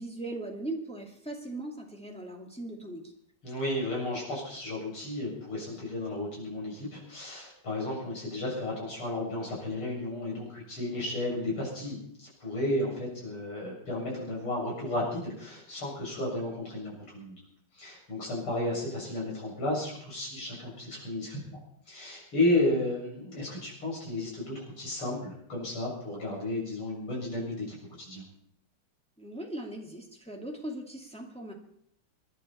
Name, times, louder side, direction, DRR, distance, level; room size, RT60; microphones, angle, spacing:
voice 1, 0.0-3.0 29.2-31.5, right 1 dB, 5° left, 0 dB, 2.0 m, -39 dB
voice 2, 3.4-17.4 17.7-21.4 21.9-28.2, left 1 dB, 85° left, -3 dB, 7.9 m, -33 dB
26.5 x 11.0 x 4.3 m, 0.68 s
omnidirectional pair, 2.3 m